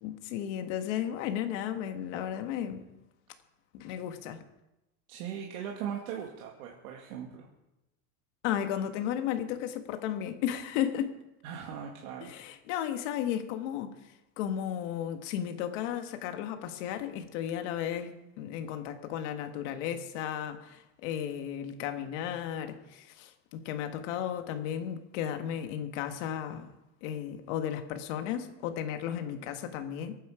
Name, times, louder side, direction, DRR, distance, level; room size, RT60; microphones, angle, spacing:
voice 1, 0.0-2.8 3.7-4.4 8.4-11.1 12.2-13.9 14.4-26.7 27.0-30.1, left 10 dB, 55° left, 1.6 m, -34 dB
voice 2, 5.1-7.5 11.4-12.4, right 8 dB, 90° right, 2.2 m, -39 dB
23.5 x 9.6 x 5.0 m
cardioid pair, 180°, 42 cm